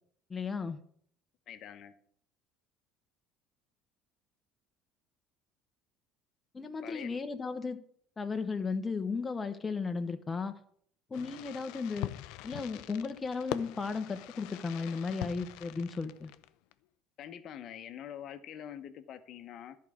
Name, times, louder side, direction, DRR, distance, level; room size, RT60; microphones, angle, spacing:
voice 1, 0.3-0.8 6.5-7.8 8.2-10.5 11.1-12.1 12.4-16.3, left 4 dB, 25° left, 7 dB, 0.9 m, -35 dB
voice 2, 1.5-1.9 6.8-7.1 17.2-19.8, left 10 dB, 55° left, 10 dB, 0.9 m, -45 dB
Fireworks, 11.1-16.7, left 15 dB, 75° left, 0.5 m, -43 dB
11.0 x 4.7 x 6.1 m, 0.63 s
supercardioid pair, 100°, 0 cm